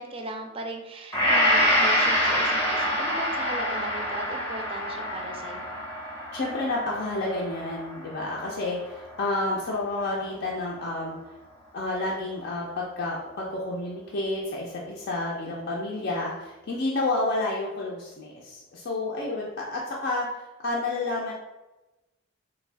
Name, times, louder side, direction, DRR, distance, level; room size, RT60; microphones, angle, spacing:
voice 1, 0.0-5.7, right 1 dB, 30° right, 3 dB, 0.4 m, -37 dB
Gong, 1.1-9.4 9.9-10.0, equal, 15° left, 0.7 m, -26 dB
voice 2, 6.3-11.2 11.7-20.3 20.6-21.3, left 2 dB, 60° left, -3 dB, 0.5 m, -30 dB
3.4 x 2.3 x 3.3 m, 1.0 s
head